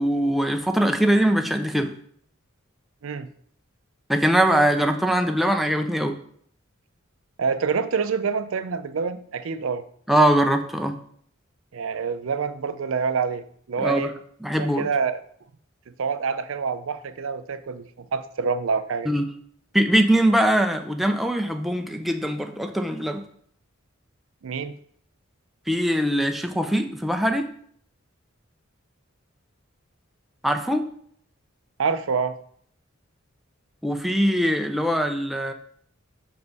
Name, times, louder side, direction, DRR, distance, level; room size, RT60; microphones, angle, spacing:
voice 1, 0.0-1.9 4.1-6.2 10.1-11.0 13.8-14.1 14.4-14.9 19.1-19.3 19.7-23.2 25.7-27.4 30.4-30.8 33.8-35.5, right 1 dB, ahead, 5 dB, 0.5 m, -22 dB
voice 2, 7.4-9.8 11.7-14.1 14.6-15.2 16.0-19.1 24.4-24.8 31.8-32.4, right 5 dB, 80° right, 11 dB, 0.5 m, -27 dB
5.8 x 5.3 x 4.0 m, 0.62 s
head